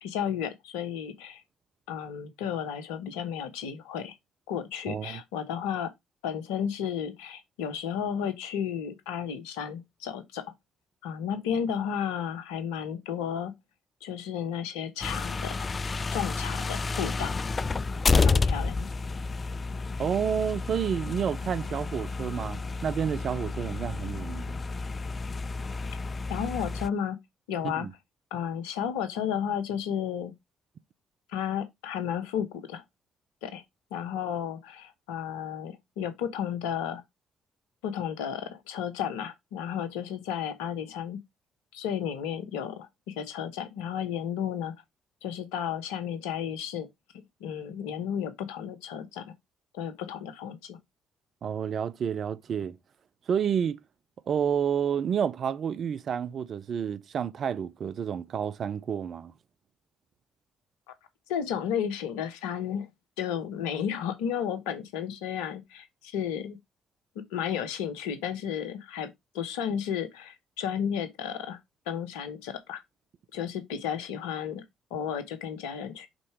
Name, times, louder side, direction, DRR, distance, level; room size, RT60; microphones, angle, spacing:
voice 1, 0.0-1.4 1.9-4.1 4.5-5.9 6.2-10.4 11.0-13.5 14.0-15.5 16.1-17.4 18.1-18.9 26.3-27.2 27.5-27.9 28.3-30.3 31.3-32.8 33.4-33.6 33.9-37.0 37.8-41.2 41.7-44.7 45.2-46.9 47.4-49.2 49.7-50.8 61.3-62.9 63.2-66.6 67.3-69.1 69.3-71.6 71.9-72.8 73.3-74.6 74.9-76.1, left 8 dB, 70° left, 0.9 m, -33 dB
voice 2, 4.9-5.2 20.0-24.6 27.6-27.9 51.4-52.8 53.3-53.8 54.3-59.3, right 8 dB, 50° right, 0.5 m, -30 dB
sound 1, 15.0-26.9, left 4 dB, 35° left, 0.3 m, -30 dB
5.2 x 4.0 x 4.9 m
figure-of-eight pair, 45°, 0 cm